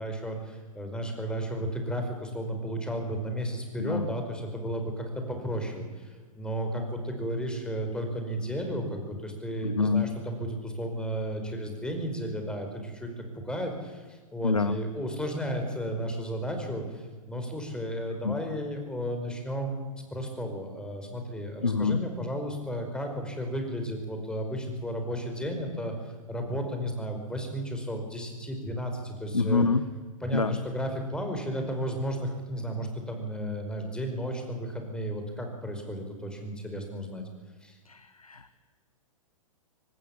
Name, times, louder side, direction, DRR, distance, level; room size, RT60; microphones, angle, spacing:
voice 1, 0.0-19.8 20.1-26.0 26.3-29.7 30.2-37.2 37.6-37.8, equal, 5° left, 4 dB, 4.9 m, -33 dB
voice 2, 9.6-10.1 14.4-14.8 18.2-18.4 21.6-22.0 29.3-29.9 30.3-30.6 37.9-38.6, left 4 dB, 90° left, 11 dB, 1.1 m, -26 dB
24.5 x 19.5 x 7.2 m, 1.4 s
figure-of-eight pair, 110°, 18 cm